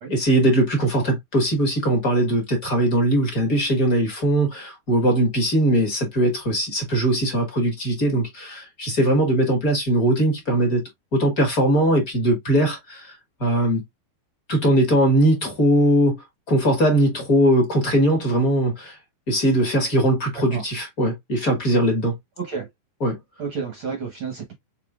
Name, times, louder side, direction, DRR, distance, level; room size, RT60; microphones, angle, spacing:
voice 1, 0.1-10.8 11.1-13.8 14.5-16.1 16.5-19.0 19.3-22.1 23.0-23.2, right 1 dB, 35° left, 1.5 m, -20 dB
voice 2, 22.4-22.7 23.4-24.5, right 5 dB, 65° right, 1.2 m, -31 dB
5.8 x 3.7 x 2.4 m
omnidirectional pair, 4.1 m